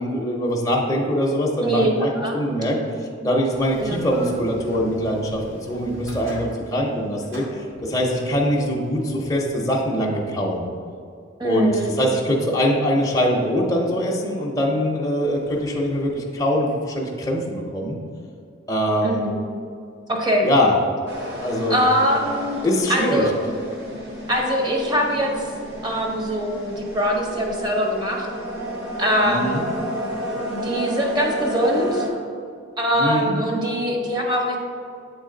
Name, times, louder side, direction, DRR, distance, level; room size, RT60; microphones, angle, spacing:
voice 1, 0.0-5.4 5.7-10.7 11.4-11.7 12.0-18.0 18.7-19.2 20.4-20.7 21.4-21.8 22.6-23.2 29.2-29.6 32.9-33.4, equal, 15° left, -2 dB, 0.6 m, -23 dB
sound 1, 3.5-10.2 15.2-16.2, equal, 85° right, 1.5 m, -42 dB
voice 2, 11.4-11.9 19.0-19.4 20.1-20.5 21.7-22.5 22.9-23.3 24.3-25.3 25.8-28.3 29.0-29.6 30.5-32.1 32.8-34.6, equal, 20° right, 0 dB, 0.8 m, -22 dB
sound 2, 21.1-32.1, equal, 55° right, 1.0 m, -31 dB
8.1 x 3.2 x 3.8 m, 2.3 s
head